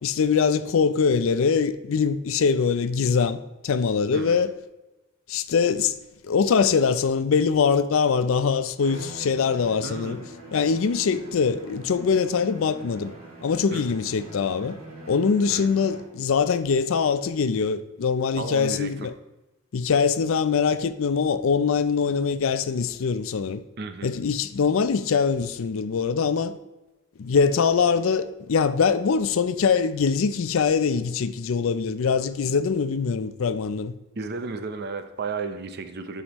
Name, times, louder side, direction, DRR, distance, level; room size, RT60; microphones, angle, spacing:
voice 1, 0.0-3.4 3.6-4.5 5.3-5.9 6.2-10.2 10.5-13.1 13.4-14.8 15.1-19.1 19.7-23.6 24.0-26.6 27.2-33.9, left 5 dB, 65° left, 0.4 m, -23 dB
Bowed string instrument, 8.8-16.2, right 1 dB, 75° right, 2.4 m, -43 dB
voice 2, 9.8-10.3 13.7-13.9 15.5-15.7 18.4-19.1 23.8-24.1 34.2-36.2, right 4 dB, 50° right, 0.6 m, -33 dB
11.5 x 5.0 x 3.0 m
head